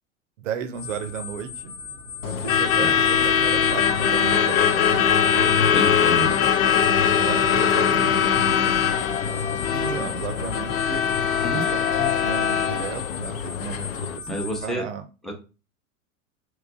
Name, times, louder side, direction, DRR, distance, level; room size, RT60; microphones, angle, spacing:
voice 1, 0.4-1.7 2.2-6.6 7.2-8.6 9.7-11.0 11.5-15.0, right 8 dB, 65° right, 9 dB, 0.6 m, -34 dB
sound 1, 0.7-14.7, left 5 dB, 45° left, 0.9 m, -38 dB
Truck / Alarm, 2.2-14.2, left 8 dB, 75° left, 0.5 m, -21 dB
voice 2, 5.7-6.3 11.4-11.6 14.3-14.8 15.2-15.3, equal, ahead, 0 dB, 0.7 m, -29 dB
3.0 x 2.3 x 3.5 m, 0.32 s
figure-of-eight pair, 90°, 41 cm